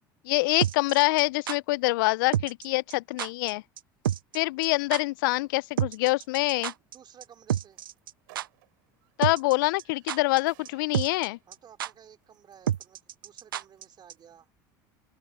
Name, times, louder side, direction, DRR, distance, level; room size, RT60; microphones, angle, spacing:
voice 1, 0.2-3.6 4.3-6.7 9.2-11.4, left 22 dB, 75° left, 0.4 m, -25 dB
sound 1, 0.6-1.6 2.3-2.6 2.9-3.0 3.2-3.5 3.8-4.4 4.6-4.7 4.9-5.0 5.8-6.9 7.2-7.3 7.5-8.1 8.3-8.5 9.2-9.5 9.8-10.4 10.6-10.7 10.9-11.3 11.5-11.6 11.8-11.9 12.7-13.8 14.1-14.2, right 11 dB, 90° right, 0.5 m, -29 dB
sound 2, 4.3-14.4, right 24 dB, 75° right, 7.9 m, -64 dB
voice 2, 6.9-7.8 11.5-14.5, right 9 dB, 40° right, 3.1 m, -54 dB
open air
hypercardioid pair, 75°, 11 cm